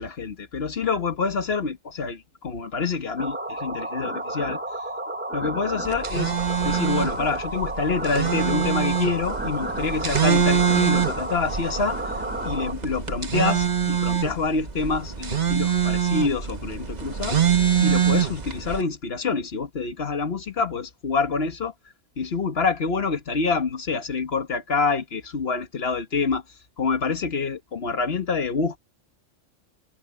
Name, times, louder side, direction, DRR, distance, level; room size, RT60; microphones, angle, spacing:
voice 1, 0.0-4.6 5.3-6.3 6.6-12.1 12.4-17.4 17.8-21.7 22.2-26.4 26.8-28.8, left 4 dB, 50° left, 1.7 m, -27 dB
sound 1, 3.2-12.7, right 1 dB, 10° right, 0.7 m, -32 dB
sound 2, 5.9-18.8, right 8 dB, 35° right, 1.1 m, -24 dB
omnidirectional pair, 1.3 m